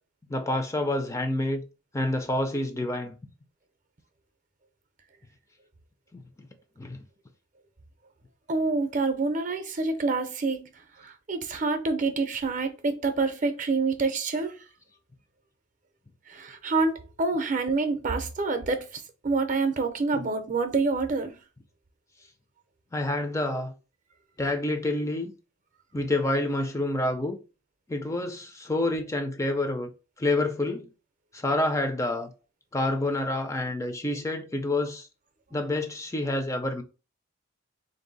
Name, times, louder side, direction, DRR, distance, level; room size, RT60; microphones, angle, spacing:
voice 1, 0.3-1.6 1.9-3.2 6.1-6.5 6.8-7.0 20.1-20.2 22.9-23.7 24.4-25.3 25.9-27.4 27.9-29.9 30.2-30.9 31.3-32.3 32.7-35.1 35.5-36.8, left 2 dB, 15° left, 0.4 m, -28 dB
voice 2, 8.5-10.7 11.0-14.5 16.3-18.9 19.2-21.3, right 3 dB, 40° right, 0.6 m, -27 dB
3.7 x 2.6 x 3.9 m
head